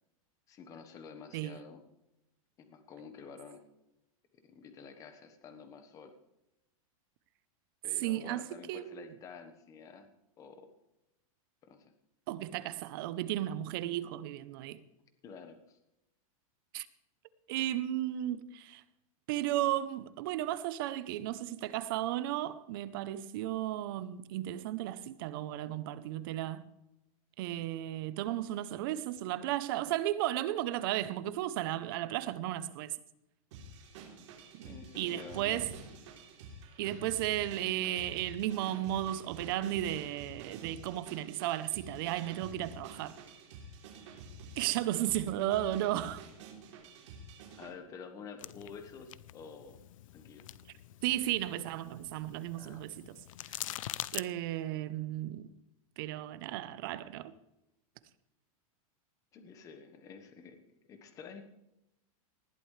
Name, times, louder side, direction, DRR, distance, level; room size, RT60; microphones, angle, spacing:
voice 1, 0.5-1.8 2.6-3.6 4.4-6.1 7.8-10.1 10.4-10.7 11.6-11.9 15.2-15.8 17.6-17.8 34.6-35.6 47.5-49.8 50.1-50.5 52.5-52.8 59.3-60.6 60.9-61.4, left 5 dB, 20° left, 1.2 m, -49 dB
voice 2, 1.3-1.6 8.0-9.1 12.3-14.8 16.7-16.9 17.5-18.8 19.3-26.7 27.4-32.9 34.5-35.7 36.8-43.2 44.6-46.2 51.0-53.2 54.1-55.5 56.0-57.3, right 13 dB, 40° right, 0.7 m, -34 dB
sound 1, 33.5-47.7, right 3 dB, 55° right, 3.4 m, -49 dB
sound 2, 48.4-54.2, left 14 dB, 65° left, 0.6 m, -45 dB
19.5 x 12.5 x 3.3 m
supercardioid pair, 175°, 18 cm